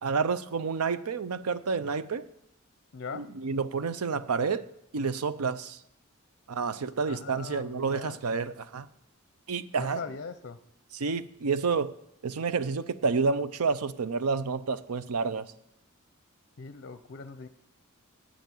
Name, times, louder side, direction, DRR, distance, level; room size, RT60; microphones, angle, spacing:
voice 1, 0.0-2.2 3.1-4.7 4.9-5.8 6.5-8.9 9.5-10.0 10.9-11.9 12.2-15.5, right 5 dB, 85° right, 14 dB, 0.6 m, -29 dB
voice 2, 2.9-3.2 7.1-8.2 9.8-10.6 16.6-17.5, left 4 dB, 55° left, 11 dB, 0.6 m, -40 dB
9.1 x 8.4 x 7.6 m, 0.77 s
head